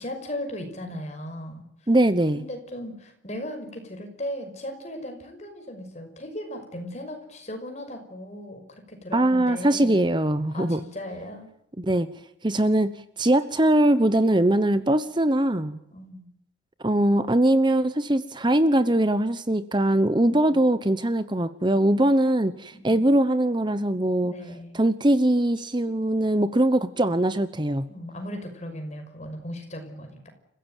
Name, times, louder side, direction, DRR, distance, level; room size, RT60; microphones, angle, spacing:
voice 1, 0.0-1.6 2.3-8.6 8.9-10.0 10.5-11.5 15.9-16.3 20.2-20.6 22.7-23.2 24.2-24.8 27.9-30.3, left 1 dB, 35° left, 5 dB, 5.8 m, -37 dB
voice 2, 1.9-2.4 9.1-10.8 11.8-12.1 12.4-15.8 16.8-24.3 24.7-27.9, right 1 dB, 25° right, 12 dB, 0.9 m, -21 dB
29.5 x 16.0 x 9.2 m, 0.81 s
head